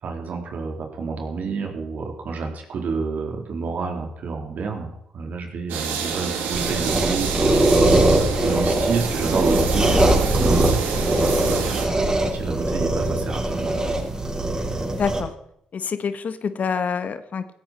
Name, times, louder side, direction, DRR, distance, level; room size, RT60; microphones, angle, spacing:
voice 1, 0.0-13.8, right 4 dB, 65° right, 3 dB, 3.9 m, -30 dB
sound 1, 5.7-11.9, right 6 dB, 80° right, 2.7 m, -28 dB
sound 2, 6.5-15.2, right 1 dB, 25° right, 6.5 m, -21 dB
voice 2, 15.0-15.3 15.7-17.6, left 6 dB, 55° left, 12 dB, 1.4 m, -26 dB
16.5 x 15.5 x 4.5 m, 0.73 s
hypercardioid pair, 45°, 3 cm